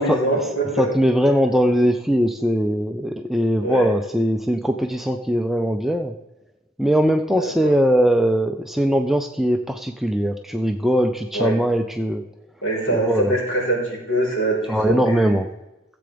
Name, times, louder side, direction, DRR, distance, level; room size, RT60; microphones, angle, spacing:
voice 1, 0.0-0.9 3.6-3.9 7.4-7.7 11.3-11.6 12.6-15.3, right 1 dB, 60° left, -5 dB, 4.0 m, -23 dB
voice 2, 0.8-6.1 6.8-12.2 12.9-13.3 14.7-15.5, equal, ahead, 4 dB, 0.3 m, -20 dB
15.5 x 7.7 x 3.4 m, 0.98 s
head